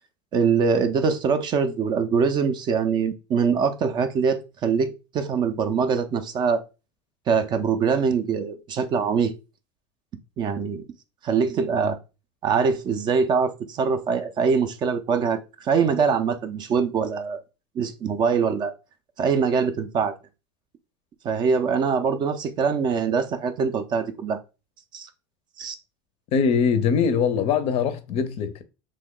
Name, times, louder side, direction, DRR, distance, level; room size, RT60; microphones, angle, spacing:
voice 1, 0.3-6.6 7.3-9.3 10.4-10.9 11.2-12.0 12.4-17.4 17.8-18.7 19.2-20.2 21.2-24.4 24.9-25.1 25.6-25.8, right 6 dB, 35° right, 0.4 m, -23 dB
voice 2, 26.3-28.6, left 6 dB, 45° left, 0.5 m, -22 dB
3.0 x 2.2 x 3.6 m
supercardioid pair, 120°, 14 cm